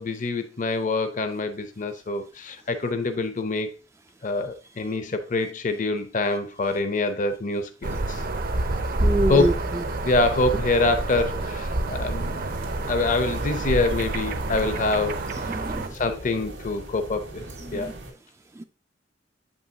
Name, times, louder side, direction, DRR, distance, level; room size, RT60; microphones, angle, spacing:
voice 1, 0.0-3.7 4.2-8.2 9.3-9.5 10.0-12.5 12.9-15.2 15.9-17.9, left 3 dB, 45° left, 0.6 m, -25 dB
sound 1, 7.8-15.9, right 2 dB, 50° right, 0.6 m, -28 dB
voice 2, 9.0-9.5 15.5-15.9 17.6-17.9, right 1 dB, 15° right, 0.3 m, -26 dB
sound 2, 11.3-18.1, right 1 dB, 85° right, 1.9 m, -40 dB
7.8 x 5.4 x 2.8 m
head